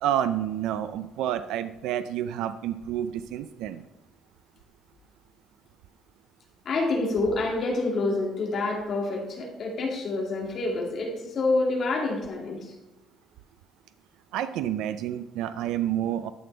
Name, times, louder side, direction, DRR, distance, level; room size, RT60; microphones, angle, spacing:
voice 1, 0.0-3.8 14.3-16.3, right 11 dB, 85° right, 11 dB, 0.4 m, -29 dB
voice 2, 6.6-12.7, left 2 dB, 40° left, 0 dB, 2.3 m, -27 dB
12.0 x 6.8 x 3.4 m, 1.1 s
cardioid pair, 160°, 0 cm